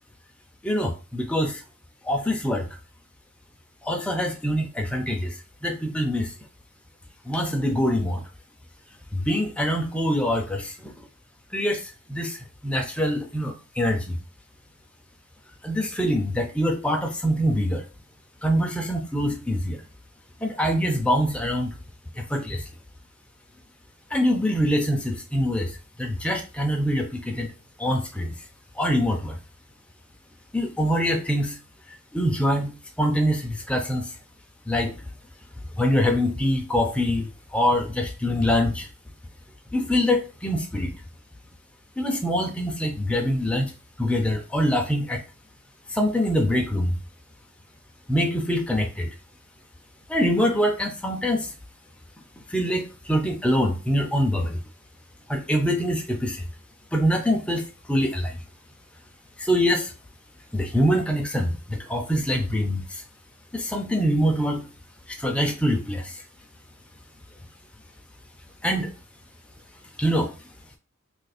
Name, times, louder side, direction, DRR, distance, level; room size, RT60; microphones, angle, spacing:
voice 1, 0.6-1.6 2.0-2.7 3.8-5.4 5.6-6.3 7.3-8.2 9.1-10.9 11.5-14.2 15.6-17.8 18.4-19.8 20.4-21.7 22.2-22.6 24.1-25.7 26.0-27.5 27.8-28.3 28.8-29.4 30.5-31.6 32.1-34.1 34.7-34.9 35.8-38.9 39.7-40.9 42.0-43.7 44.0-45.2 45.9-47.0 48.1-49.1 50.1-51.5 52.5-54.6 55.3-56.4 56.9-58.4 59.4-59.9 60.5-63.0 63.5-64.7 65.1-66.2 68.6-68.9 70.0-70.3, equal, 5° left, 3 dB, 0.5 m, -24 dB
2.8 x 2.5 x 4.1 m, 0.33 s
head